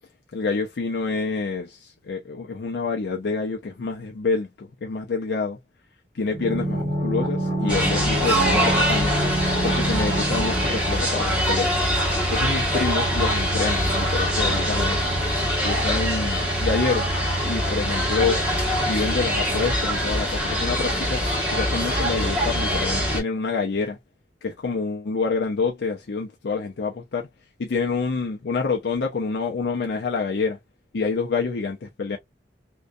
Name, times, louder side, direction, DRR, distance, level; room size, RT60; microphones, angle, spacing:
voice 1, 0.3-5.6 6.1-9.1 9.6-11.8 12.3-15.1 15.6-18.4 18.9-21.2 21.5-24.0 24.4-27.3 27.6-30.6 30.9-32.2, left 4 dB, 70° left, 0.4 m, -27 dB
sound 1, 6.3-12.0 12.2-12.3, right 1 dB, 75° right, 1.2 m, -26 dB
sound 2, 7.7-23.2, equal, 10° right, 1.0 m, -23 dB
2.6 x 2.2 x 2.2 m
head